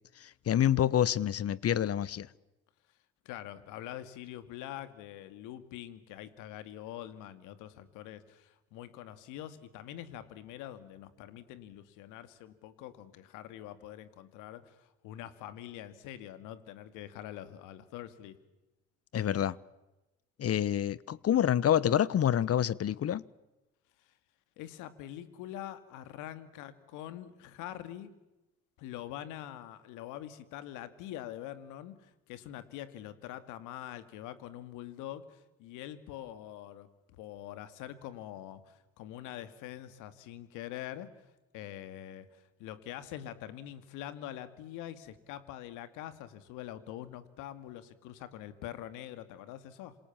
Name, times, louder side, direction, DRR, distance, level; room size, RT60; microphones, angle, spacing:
voice 1, 0.2-2.3 19.1-19.6 20.4-23.2, left 10 dB, 50° left, 1.1 m, -27 dB
voice 2, 3.2-18.4 24.0-24.1 24.6-28.1 28.8-41.2 41.5-50.0, left 12 dB, 80° left, 2.4 m, -44 dB
27.5 x 27.0 x 7.3 m
hypercardioid pair, 60°, 30 cm